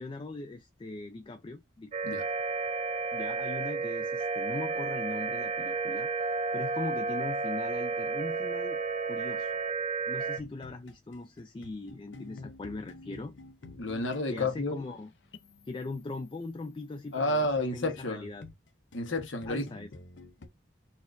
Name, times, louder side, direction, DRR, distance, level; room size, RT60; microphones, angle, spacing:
voice 1, 0.0-1.9 3.1-6.1 6.5-9.5 10.1-13.3 14.3-15.1 15.7-17.5 17.7-18.4 19.5-19.9, left 2 dB, 25° left, 0.3 m, -40 dB
sound 1, 1.9-10.4, right 4 dB, 35° right, 0.5 m, -32 dB
sound 2, 10.4-18.0 18.4-20.5, left 3 dB, 70° left, 0.6 m, -50 dB
voice 2, 13.8-14.8 17.1-18.3 18.9-19.9, left 1 dB, 85° left, 1.0 m, -31 dB
4.2 x 2.4 x 2.4 m
head